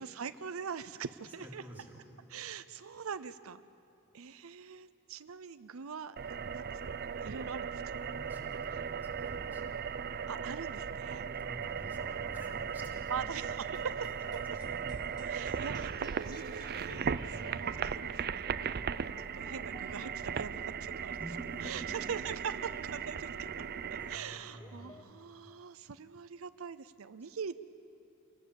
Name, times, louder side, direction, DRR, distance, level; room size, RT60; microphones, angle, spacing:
voice 1, 0.0-1.6 2.3-3.6 4.1-7.8 10.3-11.3 13.1-14.1 15.2-18.8 19.2-21.2 21.6-22.5 22.8-23.6 23.9-27.5, right 6 dB, 90° right, 13 dB, 0.6 m, -43 dB
voice 2, 1.4-2.0 7.9-10.1 11.2-13.3 14.5-14.9 15.2-15.3 17.3-18.2 21.1-21.9 24.0-25.0, right 1 dB, 10° right, -3 dB, 3.4 m, -50 dB
sound 1, 6.2-24.2, right 6 dB, 50° right, 0.5 m, -37 dB
sound 2, 13.5-25.0, equal, 20° left, 1.3 m, -55 dB
27.5 x 19.5 x 7.1 m, 2.8 s
head